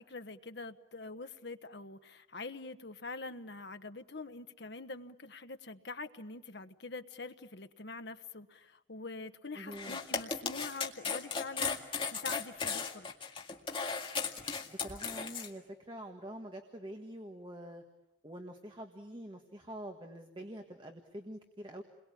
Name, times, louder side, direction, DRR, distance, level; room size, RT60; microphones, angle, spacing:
voice 1, 0.0-13.1, left 3 dB, 60° left, 8 dB, 1.2 m, -45 dB
voice 2, 9.5-10.0 14.7-17.8 18.2-21.8, right 1 dB, 25° right, 4 dB, 1.6 m, -46 dB
sound 1, 9.7-15.5, left 5 dB, 25° left, 2.0 m, -36 dB
29.5 x 22.0 x 8.5 m, 0.90 s
head